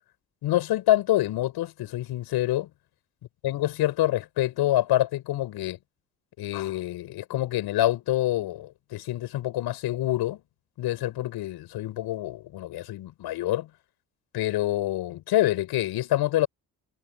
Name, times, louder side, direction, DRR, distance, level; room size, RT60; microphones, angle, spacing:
voice 1, 0.4-2.7 3.4-5.8 6.4-10.4 10.8-13.7 14.3-16.5, left 14 dB, 80° left, 7.2 m, -26 dB
supercardioid pair, 70°, 38 cm